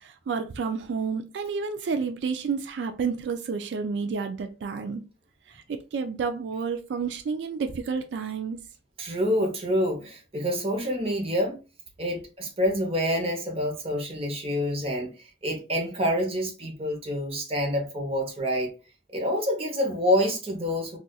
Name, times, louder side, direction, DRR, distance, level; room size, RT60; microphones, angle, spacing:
voice 1, 0.0-5.0 5.5-8.6, right 5 dB, 85° right, 0.3 m, -30 dB
voice 2, 9.0-11.6 12.0-18.7 19.1-21.0, equal, 35° right, 0.9 m, -27 dB
4.0 x 2.5 x 2.3 m
head